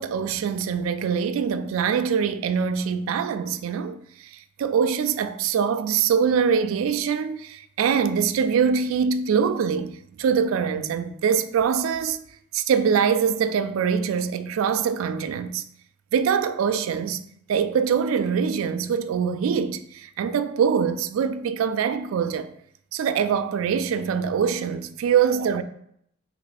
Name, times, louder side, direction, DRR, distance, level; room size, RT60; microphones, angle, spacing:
voice 1, 0.0-12.2 12.5-15.6 16.1-17.2 17.5-22.5 22.9-25.6, right 7 dB, 75° right, 0.3 m, -23 dB
3.0 x 3.0 x 4.1 m
head